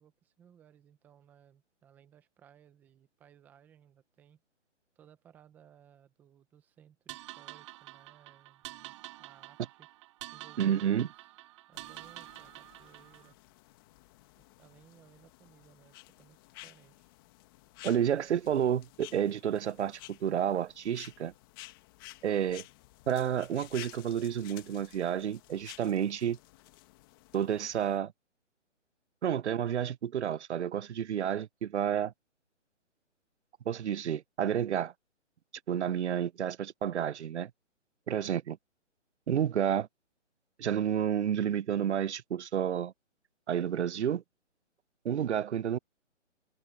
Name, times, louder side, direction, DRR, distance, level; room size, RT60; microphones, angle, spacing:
voice 1, 0.0-4.4 5.0-9.9 10.3-11.3 11.7-13.4 14.4-17.1, right 9 dB, 5° right, 0.8 m, -61 dB
sound 1, 7.1-13.3, right 17 dB, 25° right, 2.0 m, -48 dB
voice 2, 10.6-11.1 17.8-21.3 22.2-22.6 23.1-26.4 27.3-28.1 29.2-32.1 33.7-34.9 35.7-37.5 38.1-38.6 39.3-39.9 40.6-42.9 43.5-44.2 45.0-45.8, right 9 dB, 65° right, 0.7 m, -30 dB
sound 2, 11.7-28.0, left 20 dB, 20° left, 1.4 m, -53 dB
hypercardioid pair, 160°, 37 cm